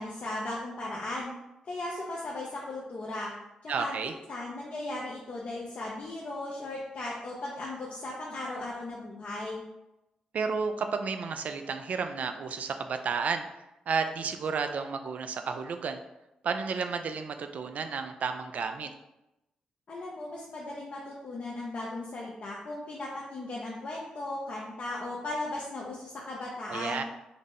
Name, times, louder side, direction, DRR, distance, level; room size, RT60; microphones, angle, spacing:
voice 1, 0.0-1.3 1.6-3.3 3.6-9.6 19.9-27.0, left 2 dB, 55° left, -4 dB, 0.7 m, -37 dB
voice 2, 3.7-4.1 10.3-13.5 13.9-16.0 16.4-18.9 26.7-27.0, right 5 dB, 65° right, 7 dB, 0.4 m, -32 dB
3.9 x 2.0 x 3.6 m, 0.93 s
supercardioid pair, 50°, 3 cm